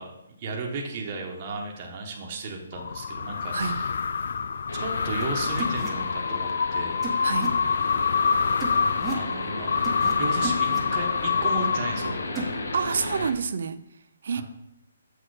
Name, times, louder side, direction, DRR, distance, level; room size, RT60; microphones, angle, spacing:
voice 1, 0.0-4.0 4.7-7.0 9.1-9.7 10.2-12.5 14.3-14.4, right 3 dB, 30° right, 0 dB, 1.2 m, -34 dB
sound 1, 2.7-12.5, left 6 dB, 60° left, 0.3 m, -26 dB
sound 2, 4.7-13.3, left 2 dB, 80° left, 1.5 m, -34 dB
sound 3, 5.2-5.3 5.6-5.9 7.0-7.5 8.6-9.2 9.8-10.1 10.4-10.8 12.4-12.6, right 3 dB, 10° right, 1.1 m, -33 dB
voice 2, 12.7-13.8 14.2-14.4, right 6 dB, 60° right, 13 dB, 0.6 m, -28 dB
7.5 x 6.4 x 4.8 m, 0.83 s
hypercardioid pair, 165°, 0 cm